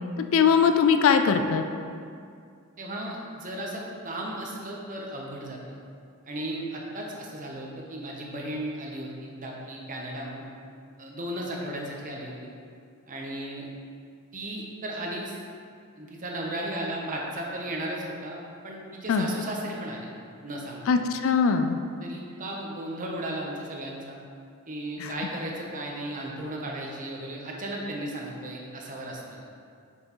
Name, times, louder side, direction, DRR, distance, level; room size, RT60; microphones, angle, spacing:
voice 1, 0.2-1.6 19.1-19.3 20.9-21.8 25.0-25.1, left 6 dB, 65° left, 7 dB, 0.4 m, -21 dB
voice 2, 2.8-5.8 6.3-10.5 11.0-12.5 13.1-13.7 14.3-15.4 16.0-20.1 20.4-20.8 22.0-24.2 24.7-29.5, right 1 dB, 40° right, -1 dB, 0.9 m, -35 dB
6.1 x 5.5 x 3.1 m, 2.3 s
head